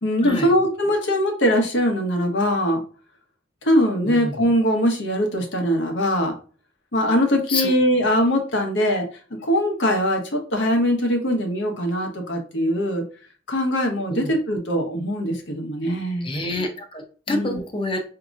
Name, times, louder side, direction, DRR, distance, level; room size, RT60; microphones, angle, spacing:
voice 1, 0.0-2.8 3.6-6.3 6.9-9.0 9.4-13.0 13.5-16.3 17.3-17.6, equal, 75° left, 3 dB, 0.9 m, -21 dB
voice 2, 16.2-18.0, left 2 dB, 30° left, 5 dB, 0.6 m, -27 dB
5.1 x 2.8 x 2.4 m, 0.40 s
head